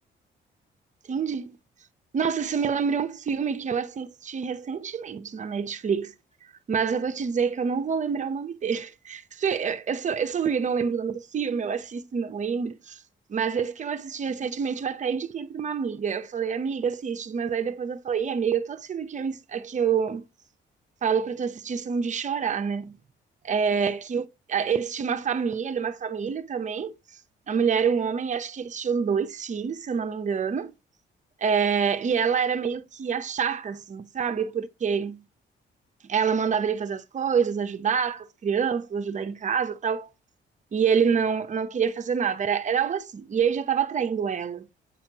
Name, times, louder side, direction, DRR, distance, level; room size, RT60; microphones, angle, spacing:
voice 1, 1.1-1.6 2.1-6.1 6.7-13.0 13.3-20.2 21.0-23.0 23.5-26.9 27.5-30.7 31.4-35.2 36.1-40.1 40.7-44.7, right 6 dB, 40° right, 0.8 m, -27 dB
8.3 x 4.3 x 2.9 m
cardioid pair, 90°, 20 cm